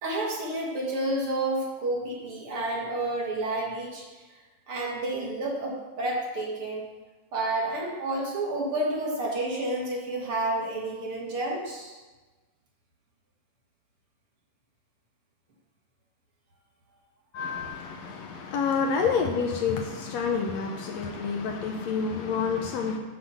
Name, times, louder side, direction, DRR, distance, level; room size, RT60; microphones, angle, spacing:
voice 1, 0.0-4.0 4.7-6.9 7.3-12.0, right 2 dB, 50° right, -2 dB, 2.2 m, -30 dB
voice 2, 17.3-23.0, left 5 dB, 75° left, 3 dB, 1.7 m, -28 dB
7.9 x 5.7 x 6.9 m, 1.2 s
omnidirectional pair, 3.4 m